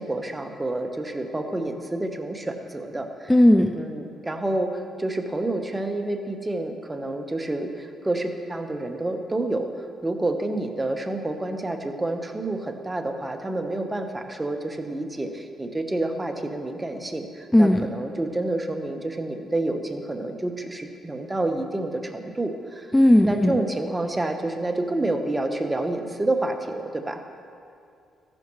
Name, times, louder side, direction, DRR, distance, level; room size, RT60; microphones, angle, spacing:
voice 1, 0.0-3.3 3.8-22.9 23.2-27.2, right 2 dB, 15° right, 5 dB, 1.1 m, -29 dB
voice 2, 3.3-3.7 17.5-17.9 22.9-23.6, left 1 dB, 10° left, 5 dB, 0.5 m, -16 dB
14.5 x 11.5 x 3.2 m, 2.4 s
cardioid pair, 90°, 0 cm